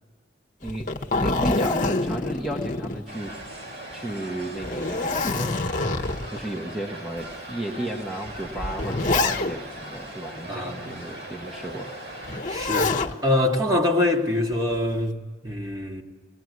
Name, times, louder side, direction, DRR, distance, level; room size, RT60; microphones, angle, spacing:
Zipper (clothing), 0.6-3.5 3.9-4.0 4.6-6.4 7.2-7.3 8.2-9.8 12.2-13.1 14.5-15.0, left 3 dB, 45° left, 1.0 m, -26 dB
voice 1, 0.6-3.3 3.9-5.9 6.3-11.9, right 1 dB, ahead, 1.4 m, -34 dB
sound 1, 3.1-12.4, right 1 dB, 65° right, 6.7 m, -39 dB
voice 2, 10.5-11.0 12.5-16.0, left 1 dB, 20° right, 2.1 m, -25 dB
22.0 x 19.5 x 9.5 m
head